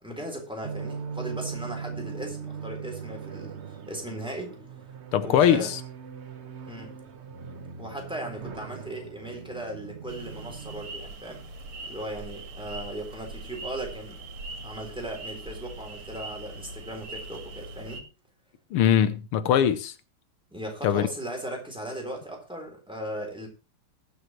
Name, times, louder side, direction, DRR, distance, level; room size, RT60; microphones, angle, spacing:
voice 1, 0.0-4.6 5.2-5.7 6.7-6.9 7.8-11.4 11.9-14.2 14.6-18.0 20.5-23.5, right 1 dB, ahead, 3.8 m, -37 dB
sound 1, 0.6-10.9, right 6 dB, 45° right, 0.9 m, -40 dB
voice 2, 5.1-5.8 18.7-19.9 20.8-21.1, left 9 dB, 85° left, 1.8 m, -21 dB
sound 2, 10.1-18.0, right 2 dB, 80° right, 2.4 m, -41 dB
20.5 x 7.7 x 3.1 m
omnidirectional pair, 2.4 m